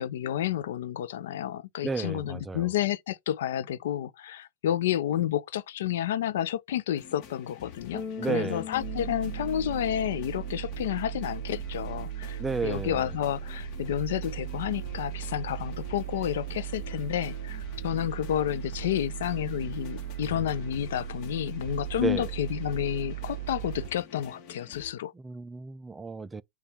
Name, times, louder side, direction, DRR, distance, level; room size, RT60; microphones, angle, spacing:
voice 1, 0.0-25.1, left 11 dB, 80° left, 0.4 m, -30 dB
voice 2, 1.8-2.7 8.2-8.6 12.4-13.1 22.0-22.3 25.1-26.4, right 4 dB, 15° right, 0.3 m, -32 dB
sound 1, 6.9-24.9, left 8 dB, 50° left, 1.1 m, -48 dB
Bass guitar, 7.9-11.1, left 6 dB, 15° left, 1.3 m, -41 dB
sound 2, 8.8-23.9, right 13 dB, 85° right, 0.4 m, -37 dB
6.9 x 2.3 x 3.3 m
supercardioid pair, 125°, 0 cm